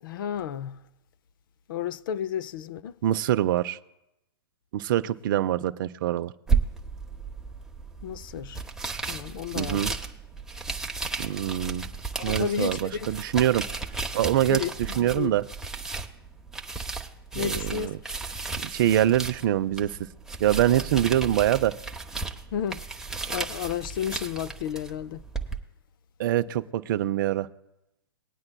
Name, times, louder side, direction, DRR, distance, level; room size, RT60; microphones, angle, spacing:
voice 1, 0.0-0.8 1.7-2.9 8.0-8.6 9.1-10.0 12.2-13.1 14.5-15.4 17.3-17.9 20.7-20.8 22.5-22.8 23.3-25.2, left 8 dB, 55° left, 0.5 m, -32 dB
voice 2, 3.0-3.8 4.7-6.3 9.6-9.9 11.2-11.8 12.2-13.6 14.1-15.4 17.3-18.0 18.6-20.0 20.4-21.7 26.2-27.5, right 12 dB, 55° right, 0.4 m, -24 dB
sound 1, 6.5-25.6, right 4 dB, 5° right, 0.8 m, -34 dB
19.5 x 9.6 x 2.2 m
hypercardioid pair, 120°, 13 cm